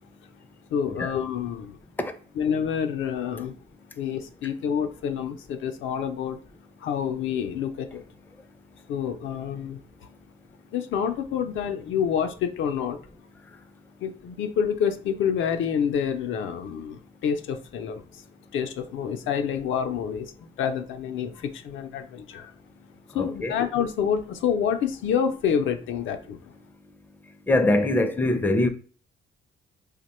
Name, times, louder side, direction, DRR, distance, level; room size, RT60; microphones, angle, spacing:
voice 1, 0.7-1.8 2.4-3.5 4.0-6.4 6.8-8.0 8.9-10.1 10.7-13.0 14.0-18.2 18.5-20.3 20.6-22.5 23.1-26.4, left 7 dB, 75° left, 0.4 m, -28 dB
voice 2, 23.2-23.5 27.5-28.7, left 2 dB, 10° left, 0.4 m, -23 dB
2.9 x 2.1 x 4.1 m
cardioid pair, 90°, 20 cm